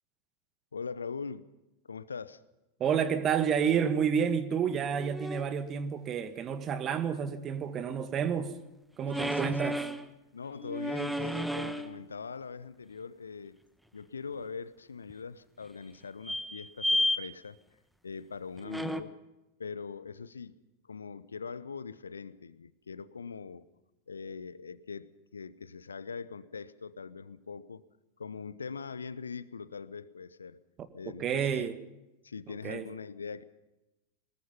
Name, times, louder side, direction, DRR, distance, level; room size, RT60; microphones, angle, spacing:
voice 1, 0.7-1.4 1.9-2.4 9.1-9.8 10.3-13.6 13.9-17.6 18.0-19.1 19.6-20.6 20.9-23.7 24.1-27.8 28.2-30.6 30.9-31.7 32.2-33.4, left 5 dB, 75° left, 1.0 m, -42 dB
voice 2, 2.8-8.6 9.0-9.8 31.2-31.8 32.5-32.9, right 7 dB, 30° right, 1.9 m, -30 dB
sound 1, 4.8-5.5 9.1-10.1 10.6-12.0 15.1-15.2 16.2-17.2 18.6-19.0, left 1 dB, ahead, 1.3 m, -32 dB
23.5 x 20.5 x 5.6 m
figure-of-eight pair, 90°, 0 cm